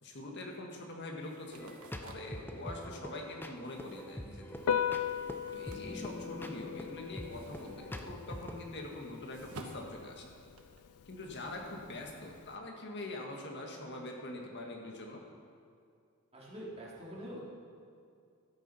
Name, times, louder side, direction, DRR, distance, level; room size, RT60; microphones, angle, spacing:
voice 1, 0.0-1.7 2.0-4.7 5.5-10.3 11.1-15.2, left 2 dB, 55° left, 1 dB, 1.7 m, -44 dB
sound 1, 1.2-6.6 6.9-10.8, right 2 dB, 90° right, 1.1 m, -54 dB
sound 2, 1.6-8.6, left 1 dB, 10° left, 0.6 m, -45 dB
Piano, 4.6-12.5, left 8 dB, 85° left, 0.4 m, -40 dB
voice 2, 16.3-17.4, equal, 30° right, -5 dB, 2.6 m, -45 dB
12.5 x 8.5 x 5.6 m, 2.4 s
head